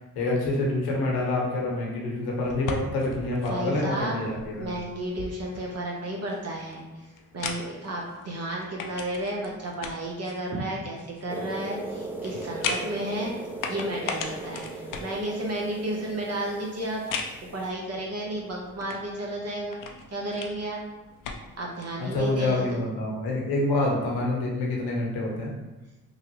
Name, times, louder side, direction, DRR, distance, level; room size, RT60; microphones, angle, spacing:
voice 1, 0.1-4.7 22.0-25.5, left 2 dB, 80° left, -2 dB, 1.0 m, -27 dB
sound 1, 2.4-21.9, left 5 dB, 60° left, 0.5 m, -39 dB
voice 2, 3.5-4.2 4.6-6.8 7.3-13.3 13.7-17.0 17.4-19.8 20.1-20.8 21.6-22.8, right 1 dB, 45° right, -2 dB, 0.8 m, -32 dB
sound 2, 11.3-17.6, right 2 dB, 5° right, 0.5 m, -38 dB
3.0 x 2.4 x 2.9 m, 1.1 s
supercardioid pair, 55°, 37 cm